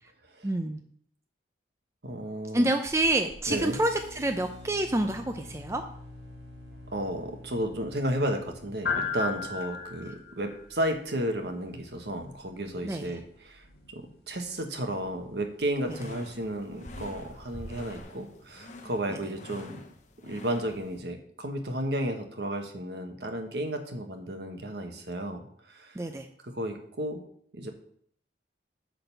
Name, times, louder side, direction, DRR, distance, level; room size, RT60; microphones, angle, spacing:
voice 1, 0.4-0.8 2.5-5.8 12.8-13.2 19.1-19.2 26.0-26.3, right 1 dB, 15° right, 5 dB, 0.5 m, -28 dB
voice 2, 2.0-2.7 3.5-3.8 6.9-19.8 20.2-26.0 26.4-27.2 27.5-27.7, right 1 dB, 65° right, 5 dB, 1.3 m, -33 dB
sound 1, 2.9-18.0, left 5 dB, 60° left, 2.0 m, -41 dB
sound 2, 3.5-9.6, left 1 dB, 85° right, 2.1 m, -47 dB
sound 3, 15.6-21.0, left 2 dB, 40° left, 0.9 m, -48 dB
8.9 x 4.0 x 6.9 m, 0.63 s
head